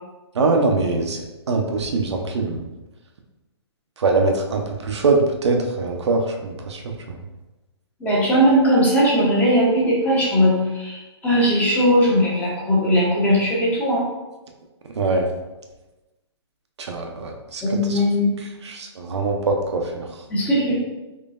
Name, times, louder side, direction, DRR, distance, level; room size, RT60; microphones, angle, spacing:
voice 1, 0.3-2.7 4.0-7.2 15.0-15.3 16.8-18.0 18.6-20.2, right 3 dB, 75° right, 3 dB, 0.6 m, -23 dB
voice 2, 8.0-14.0 17.6-18.4 20.3-20.7, equal, 10° left, -5 dB, 0.8 m, -19 dB
3.7 x 3.2 x 2.5 m, 1.1 s
hypercardioid pair, 145°, 15 cm